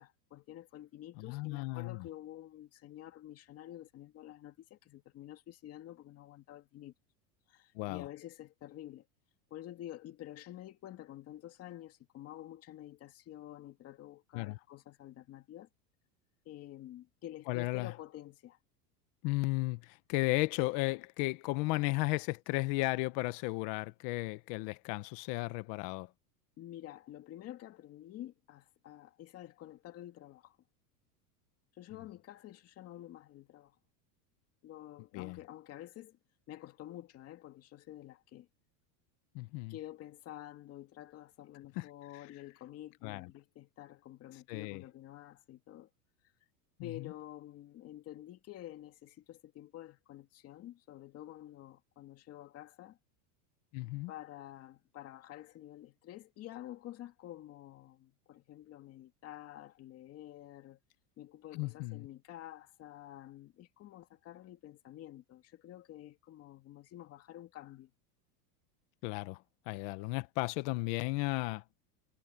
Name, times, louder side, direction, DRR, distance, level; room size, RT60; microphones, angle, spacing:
voice 1, 0.0-6.9 7.5-9.1 9.5-15.7 16.4-18.6 26.6-30.6 31.7-33.8 34.6-36.2 36.5-38.5 39.7-45.9 46.8-53.0 54.1-60.8 61.2-67.9, left 13 dB, 30° left, 2.3 m, -49 dB
voice 2, 1.2-2.1 7.7-8.0 14.3-14.6 17.5-17.9 19.2-26.1 35.1-35.4 39.3-39.7 41.8-41.9 43.0-43.3 44.5-44.8 53.7-54.1 61.5-62.1 69.0-71.6, left 22 dB, 45° left, 1.1 m, -34 dB
supercardioid pair, 155°, 47 cm